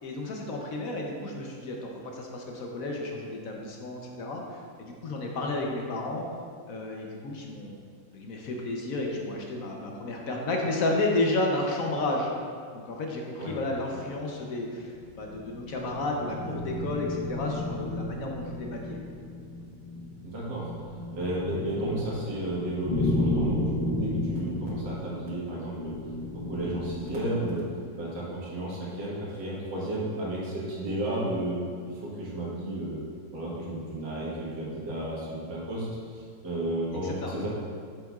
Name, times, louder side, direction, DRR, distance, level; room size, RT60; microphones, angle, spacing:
voice 1, 0.0-6.3 6.7-7.8 8.1-12.3 12.7-19.0 37.0-37.3, left 2 dB, 60° left, 0 dB, 0.9 m, -32 dB
sound 1, 14.8-27.4, left 1 dB, 35° left, 0.9 m, -33 dB
voice 2, 20.2-20.7 21.1-26.0 26.3-27.7 28.0-33.0 33.3-37.5, right 1 dB, 65° right, -6 dB, 2.2 m, -33 dB
8.2 x 6.6 x 2.4 m, 2.2 s
omnidirectional pair, 2.1 m